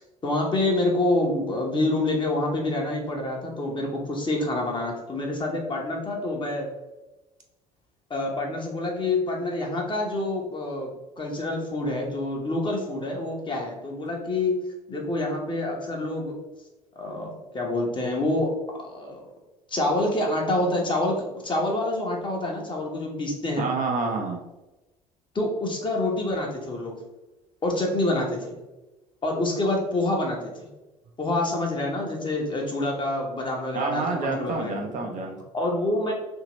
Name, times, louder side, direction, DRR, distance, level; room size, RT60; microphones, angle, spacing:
voice 1, 0.2-6.7 8.1-14.6 14.9-16.3 17.0-18.5 18.8-19.2 19.7-23.7 25.3-26.9 27.6-28.6 29.2-30.7 31.2-34.9 35.5-36.1, left 2 dB, 25° left, 0 dB, 0.9 m, -27 dB
voice 2, 23.6-24.4 33.7-35.4, right 4 dB, 40° right, 2 dB, 0.6 m, -28 dB
2.9 x 2.7 x 3.0 m, 1.0 s
figure-of-eight pair, 60°, 20 cm